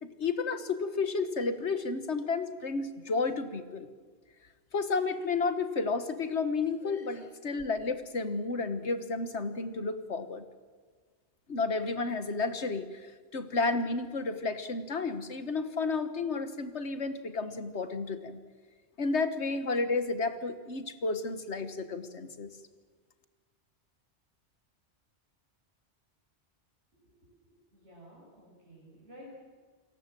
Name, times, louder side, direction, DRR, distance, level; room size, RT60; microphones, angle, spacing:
voice 1, 0.0-3.9 4.7-10.4 11.5-18.4 19.0-22.5, left 4 dB, 75° left, 10 dB, 1.8 m, -32 dB
voice 2, 27.7-29.3, equal, 80° right, -5 dB, 6.3 m, -53 dB
28.5 x 19.0 x 7.6 m, 1.5 s
omnidirectional pair, 1.2 m